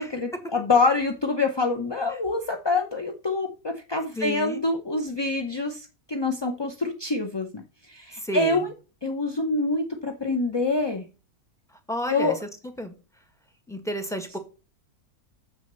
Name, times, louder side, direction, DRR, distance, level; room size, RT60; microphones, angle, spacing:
voice 1, 0.0-8.7 9.0-11.1 12.1-12.3, left 3 dB, 25° left, 4 dB, 0.5 m, -26 dB
voice 2, 4.1-4.6 8.2-8.6 11.9-12.4 12.8-12.9 13.7-14.4, equal, ahead, 6 dB, 1.4 m, -31 dB
7.2 x 6.3 x 6.6 m, 0.33 s
omnidirectional pair, 1.6 m